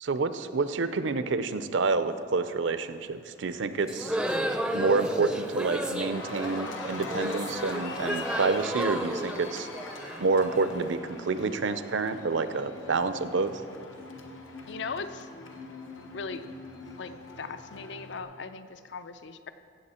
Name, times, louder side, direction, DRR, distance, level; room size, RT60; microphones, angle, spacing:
voice 1, 0.0-4.2 4.7-9.7 10.2-13.5, right 4 dB, 75° right, 12 dB, 0.6 m, -28 dB
Cheering, 3.3-3.7 4.1-18.2, left 3 dB, 85° left, 1.2 m, -43 dB
sound 1, 3.8-10.8, equal, 5° right, 0.4 m, -32 dB
voice 2, 14.7-15.3 16.1-16.4 17.0-19.5, left 4 dB, 65° left, 11 dB, 0.5 m, -38 dB
16.5 x 7.7 x 4.3 m, 2.3 s
head